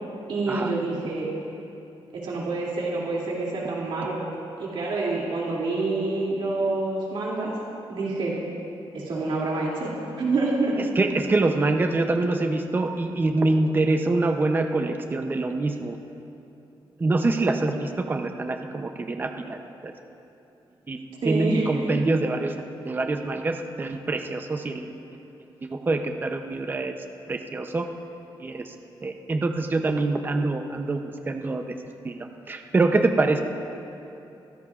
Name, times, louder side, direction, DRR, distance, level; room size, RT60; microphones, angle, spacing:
voice 1, 0.3-1.3 2.2-4.2 4.6-7.5 7.9-8.4 8.9-9.9 10.2-10.8 21.2-21.9, right 3 dB, 70° right, -5 dB, 2.6 m, -27 dB
voice 2, 10.8-16.0 17.0-19.9 20.9-21.0 21.2-22.5 22.8-24.9 25.6-27.0 27.3-27.9 28.4-28.7 29.0-31.0 31.3-31.7 32.0-33.4, right 2 dB, 20° right, 5 dB, 0.6 m, -25 dB
23.0 x 15.5 x 2.4 m, 2.8 s
wide cardioid pair, 155°, 9 cm